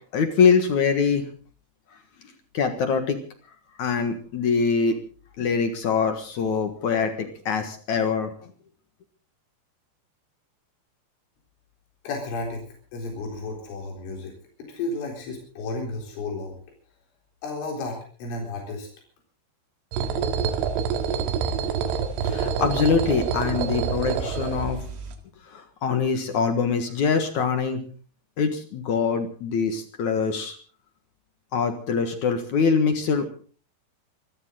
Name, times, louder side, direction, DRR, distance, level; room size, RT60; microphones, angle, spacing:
voice 1, 0.1-1.2 2.5-3.2 3.8-5.0 5.4-8.3 22.2-24.8 25.5-27.8 28.4-30.6 31.5-33.4, left 5 dB, 60° left, 7 dB, 2.1 m, -23 dB
voice 2, 12.0-12.6 12.9-14.3 14.7-16.5 17.4-18.9, left 2 dB, 85° left, 0 dB, 6.5 m, -32 dB
sound 1, 19.9-25.1, right 6 dB, 85° right, 4.3 m, -27 dB
25.5 x 14.5 x 3.8 m, 0.42 s
omnidirectional pair, 5.5 m